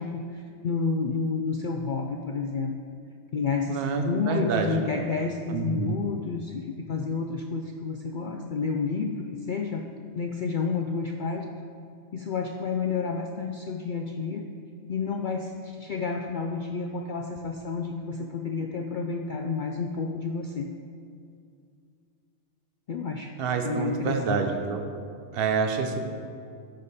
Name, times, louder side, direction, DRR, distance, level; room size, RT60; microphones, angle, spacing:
voice 1, 0.0-2.8 3.3-9.9 10.2-11.5 12.1-14.4 14.9-20.7 22.9-23.3 23.6-24.5, left 4 dB, 75° left, 3 dB, 0.4 m, -30 dB
voice 2, 3.7-4.8 5.5-6.0 23.4-24.8 25.3-26.1, right 5 dB, 50° right, 4 dB, 0.9 m, -27 dB
12.5 x 5.1 x 4.2 m, 2.4 s
omnidirectional pair, 1.4 m